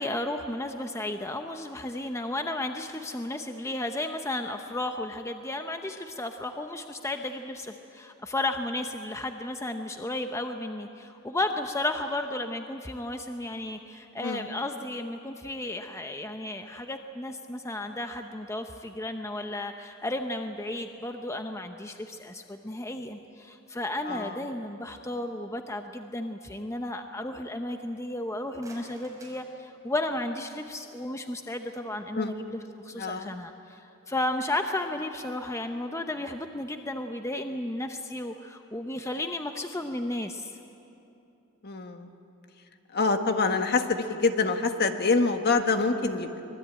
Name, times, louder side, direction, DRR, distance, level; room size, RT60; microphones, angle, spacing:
voice 1, 0.0-40.5, left 1 dB, 15° left, 5 dB, 0.8 m, -33 dB
voice 2, 24.0-24.4 32.1-32.4 32.9-33.3 41.6-42.1 42.9-46.4, left 3 dB, 50° left, 6 dB, 1.6 m, -26 dB
sound 1, 28.4-30.3, right 1 dB, 15° right, 5.6 m, -53 dB
24.5 x 21.0 x 9.0 m, 2.8 s
head